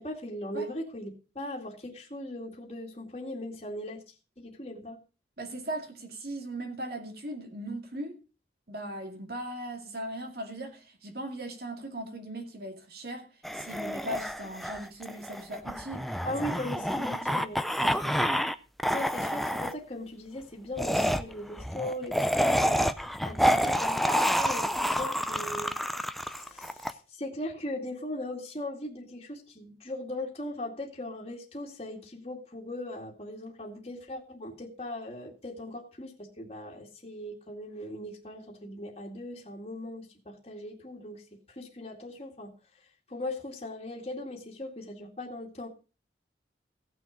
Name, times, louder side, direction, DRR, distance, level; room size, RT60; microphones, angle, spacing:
voice 1, 0.0-4.0 4.4-5.0 16.2-17.6 18.9-22.8 23.2-25.7 26.2-41.2 41.5-42.5 43.1-45.7, left 1 dB, 30° left, 2.2 m, -39 dB
voice 2, 5.4-8.2 8.7-16.2 17.3-17.4 17.8-18.2, right 1 dB, 55° right, 2.4 m, -39 dB
sound 1, 13.4-18.5 18.8-19.7 20.8-26.9, equal, ahead, 0.5 m, -28 dB
16.5 x 6.3 x 5.1 m
head